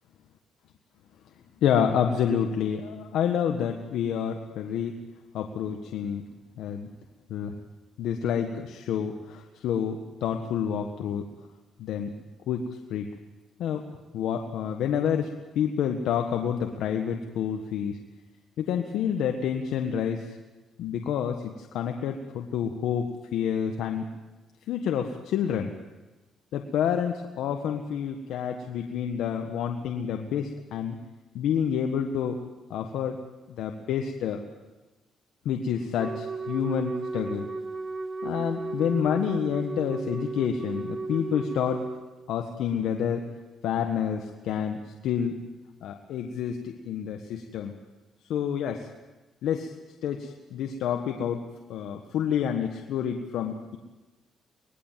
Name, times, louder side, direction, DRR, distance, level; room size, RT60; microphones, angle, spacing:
voice 1, 1.6-5.0 5.3-6.2 6.6-6.9 7.3-7.5 8.0-11.3 11.8-12.1 12.5-13.1 13.6-13.8 14.1-15.3 15.5-18.0 18.6-20.3 20.8-24.1 24.7-25.7 26.5-31.0 31.3-32.4 32.7-33.2 33.5-34.4 35.4-37.5 38.2-41.8 42.3-43.2 43.6-45.4 45.8-47.7 48.3-48.9 49.4-49.7 50.0-51.4 51.7-53.8, left 8 dB, 80° left, 4 dB, 1.5 m, -28 dB
Wind instrument woodwind instrument, 36.0-42.0, right 3 dB, 30° right, 1.4 m, -34 dB
24.0 x 20.0 x 7.6 m, 1.2 s
cardioid pair, 90°, 0 cm